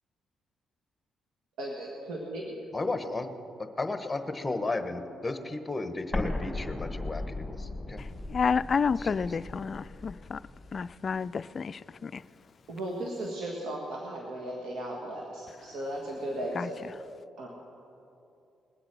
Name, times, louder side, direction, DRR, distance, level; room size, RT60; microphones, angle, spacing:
voice 1, 1.6-2.4 12.7-16.8 17.4-17.5, right 1 dB, 80° right, -2 dB, 1.8 m, -36 dB
voice 2, 2.7-3.3 3.8-8.0 9.0-9.2, left 2 dB, 20° left, 8 dB, 1.2 m, -34 dB
Explosion, 6.1-10.9, left 2 dB, 5° left, 2.5 m, -37 dB
voice 3, 8.0-10.4 10.7-12.2 16.6-16.7, left 5 dB, 45° left, 14 dB, 0.3 m, -30 dB
21.0 x 7.9 x 6.1 m, 2.7 s
cardioid pair, 75°, 0 cm